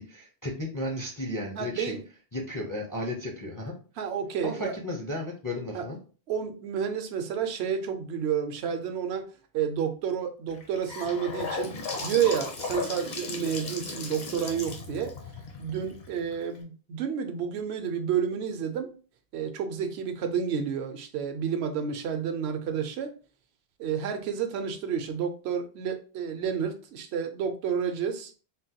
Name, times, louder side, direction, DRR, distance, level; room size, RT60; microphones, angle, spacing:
voice 1, 0.0-2.0 2.3-3.7 4.4-6.0, left 1 dB, 30° left, 0.4 m, -34 dB
voice 2, 1.6-2.0 4.0-4.7 5.7-5.9 6.3-9.3 9.5-11.8 12.0-15.2 15.6-18.9 19.3-23.1 23.8-28.3, right 7 dB, 80° right, 0.8 m, -30 dB
Gurgling / Sink (filling or washing) / Bathtub (filling or washing), 10.5-16.6, left 3 dB, 45° left, 0.7 m, -36 dB
3.7 x 2.1 x 2.7 m
omnidirectional pair, 1.1 m